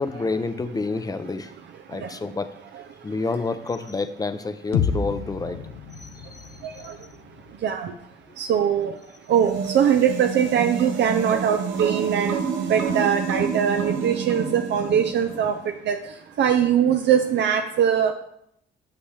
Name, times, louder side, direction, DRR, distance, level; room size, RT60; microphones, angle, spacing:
voice 1, 0.0-1.5 1.9-2.5 3.0-5.6 6.0-6.9, left 3 dB, 20° left, 10 dB, 0.6 m, -29 dB
sound 1, 4.7-8.7, left 6 dB, 90° left, 0.7 m, -30 dB
voice 2, 8.4-8.9 9.3-12.4 12.7-16.0 16.4-18.1, right 8 dB, 65° right, 6 dB, 0.6 m, -21 dB
sound 2, 9.3-15.6, right 6 dB, 80° right, 1.0 m, -29 dB
8.4 x 7.0 x 3.4 m, 0.74 s
cardioid pair, 90°, 20 cm